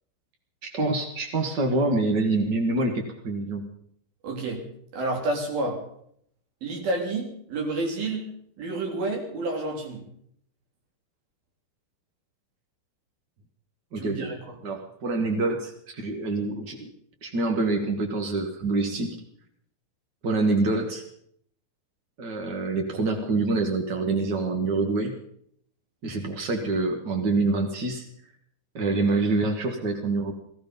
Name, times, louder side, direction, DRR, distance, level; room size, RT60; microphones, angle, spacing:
voice 1, 0.6-3.6 13.9-14.3 14.6-16.9 17.2-19.2 20.2-21.0 22.2-25.1 26.0-28.1 28.7-30.3, right 3 dB, 55° right, 3 dB, 1.1 m, -26 dB
voice 2, 4.2-4.6 4.9-5.8 6.6-8.3 8.6-10.0 14.0-14.6, right 2 dB, 80° right, 1 dB, 5.2 m, -29 dB
17.5 x 15.0 x 5.3 m, 0.67 s
omnidirectional pair, 4.2 m